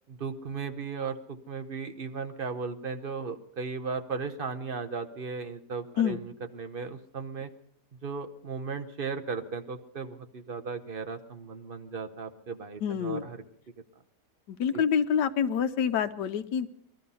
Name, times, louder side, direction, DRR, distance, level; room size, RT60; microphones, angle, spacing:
voice 1, 0.1-7.5 8.0-13.4 14.7-14.8, right 5 dB, 45° right, 8 dB, 0.7 m, -36 dB
voice 2, 12.8-13.2 14.5-16.7, left 7 dB, 80° left, 10 dB, 1.4 m, -27 dB
20.0 x 13.0 x 5.5 m, 0.72 s
omnidirectional pair, 1.8 m